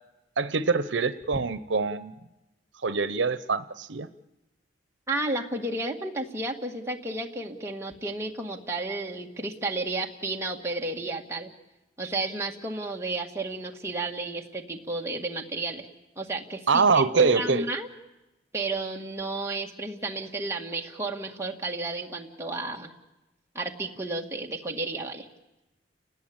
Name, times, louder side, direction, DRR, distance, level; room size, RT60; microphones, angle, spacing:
voice 1, 0.4-2.2 2.8-4.1 16.7-17.6, right 4 dB, 85° right, 13 dB, 0.8 m, -24 dB
voice 2, 5.1-11.5 12.0-15.9 16.2-17.9 18.5-22.9 23.5-25.3, right 2 dB, 15° right, 0 dB, 1.9 m, -32 dB
30.0 x 19.0 x 8.8 m, 1.0 s
head